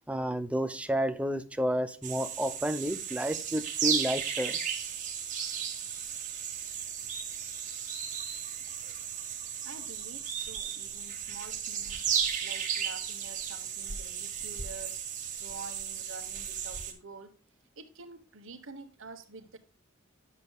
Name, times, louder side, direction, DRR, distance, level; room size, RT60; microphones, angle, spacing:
voice 1, 0.1-4.6, equal, 5° right, 0.6 m, -31 dB
sound 1, 2.0-16.9, right 7 dB, 40° right, 1.6 m, -35 dB
voice 2, 9.6-12.1 12.4-15.0 15.4-17.3 17.7-19.6, right 3 dB, 70° right, 1.3 m, -47 dB
9.7 x 7.3 x 2.3 m
head